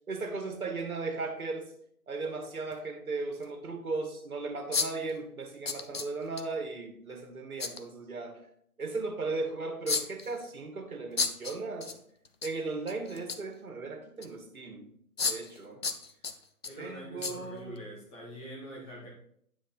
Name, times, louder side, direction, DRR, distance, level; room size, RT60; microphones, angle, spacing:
voice 1, 0.1-1.7 2.1-8.4 8.8-11.9 12.4-14.9 15.2-15.8 16.8-17.8, right 3 dB, 65° right, 4 dB, 1.9 m, -36 dB
sound 1, 0.8-0.9 2.7-2.8 3.4-3.5 4.7-5.1 5.6-6.4 7.6-7.8 9.9-10.4 11.2-11.9 12.2-12.5 12.9-13.5 14.2-14.3 15.2-15.6 15.8-16.7 17.2-17.3 17.8-17.9, left 5 dB, 45° left, 0.6 m, -32 dB
voice 2, 16.6-19.1, equal, 15° left, -3 dB, 1.6 m, -44 dB
9.6 x 4.1 x 4.1 m, 0.67 s
figure-of-eight pair, 145°, 45 cm